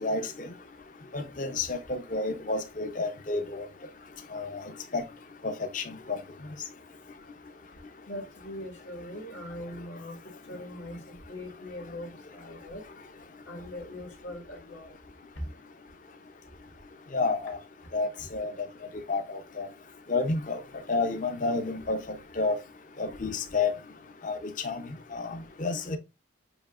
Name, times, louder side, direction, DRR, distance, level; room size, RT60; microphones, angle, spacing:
voice 1, 0.0-0.5 1.1-3.6 4.3-4.6 4.9-5.0 5.4-6.2 17.1-17.6 17.9-18.5 19.1-19.7 20.1-20.6 20.9-22.0 22.4-22.6 23.0-23.7 24.2-24.4 24.6-24.8 25.1-26.0, left 3 dB, 40° left, 0.6 m, -30 dB
voice 2, 8.1-10.2 10.5-12.8 13.5-14.9 15.3-15.5, left 1 dB, 75° left, 1.7 m, -41 dB
7.0 x 2.9 x 2.4 m
head